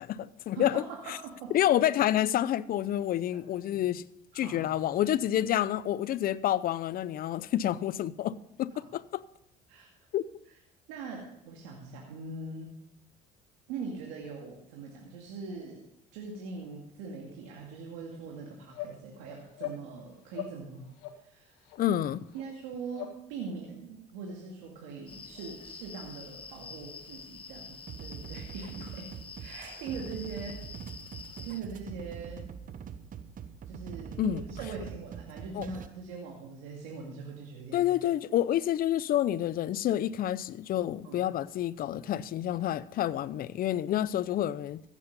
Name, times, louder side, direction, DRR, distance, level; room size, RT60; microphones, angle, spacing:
voice 1, 0.0-1.2 1.5-4.0 4.3-9.2 10.1-10.3 21.8-22.3 34.2-34.4 35.5-35.7 37.7-44.8, left 12 dB, 55° left, 0.6 m, -29 dB
voice 2, 4.3-4.9 9.7-9.9 10.9-12.7 13.7-21.6 22.3-29.1 29.4-30.6 31.4-32.4 33.7-37.8 41.0-41.3, right 4 dB, 85° right, 2.2 m, -42 dB
sound 1, 18.1-18.2 18.7-19.0 19.5-19.8 20.3-20.6 21.0-21.2 21.7-21.8 22.3-22.4 22.9-23.2, left 10 dB, 85° left, 1.8 m, -39 dB
sound 2, 25.1-31.6, left 5 dB, 30° left, 1.3 m, -47 dB
sound 3, 27.9-35.9, right 7 dB, 50° right, 1.1 m, -43 dB
15.0 x 8.4 x 5.3 m
supercardioid pair, 80°, 18 cm